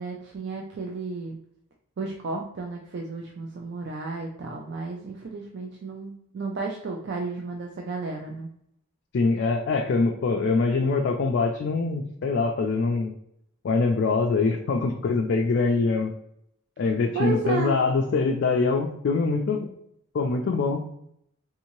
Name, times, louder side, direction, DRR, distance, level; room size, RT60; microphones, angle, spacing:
voice 1, 0.0-1.4 2.0-8.5 17.1-17.7, right 3 dB, 55° right, 1 dB, 0.4 m, -33 dB
voice 2, 9.1-13.1 13.6-16.1 16.8-19.7 20.1-20.8, left 4 dB, 55° left, 2 dB, 0.3 m, -24 dB
3.6 x 2.7 x 2.9 m, 0.73 s
head